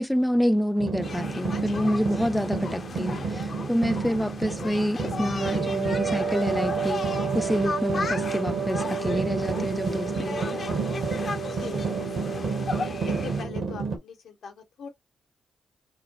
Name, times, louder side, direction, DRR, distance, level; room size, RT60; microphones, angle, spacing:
voice 1, 0.0-10.8, equal, 5° left, 0.3 m, -27 dB
sound 1, 0.8-14.0, right 4 dB, 70° right, 1.0 m, -31 dB
sound 2, 1.0-13.4, left 4 dB, 50° left, 0.5 m, -36 dB
Wind instrument woodwind instrument, 5.4-13.5, right 6 dB, 90° right, 1.5 m, -32 dB
voice 2, 11.5-12.7 13.0-14.9, left 6 dB, 75° left, 0.8 m, -42 dB
2.9 x 2.2 x 2.8 m
cardioid pair, 60°, 0 cm